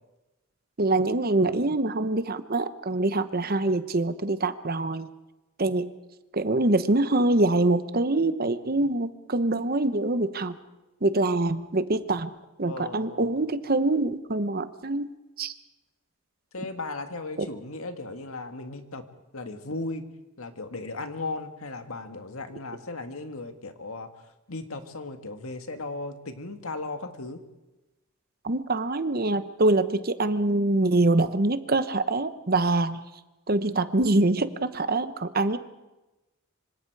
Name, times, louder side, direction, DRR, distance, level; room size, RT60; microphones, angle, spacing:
voice 1, 0.8-5.1 5.6-5.9 6.3-10.6 11.0-12.3 12.6-15.1 15.4-15.5 17.4-17.5 28.4-33.0 33.5-35.6, right 2 dB, 45° right, 12 dB, 1.0 m, -24 dB
voice 2, 12.7-13.3 16.5-19.0 19.3-20.1 20.4-27.4, left 3 dB, 80° left, 7 dB, 1.9 m, -36 dB
26.0 x 25.5 x 4.8 m, 1.0 s
head